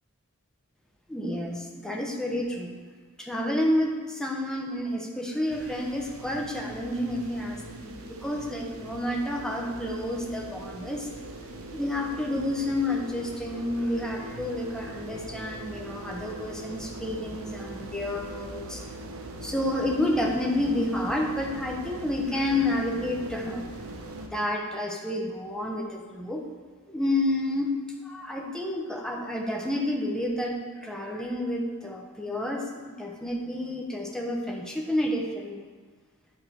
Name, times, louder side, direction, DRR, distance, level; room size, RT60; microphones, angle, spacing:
voice 1, 1.1-2.7 3.2-11.1 11.7-18.8 19.4-23.6 24.3-26.4 26.9-27.8 28.0-35.7, left 1 dB, 5° left, -1 dB, 0.9 m, -30 dB
sound 1, 5.5-24.3, right 1 dB, 65° right, 0.8 m, -41 dB
10.5 x 4.7 x 4.4 m, 1.5 s
head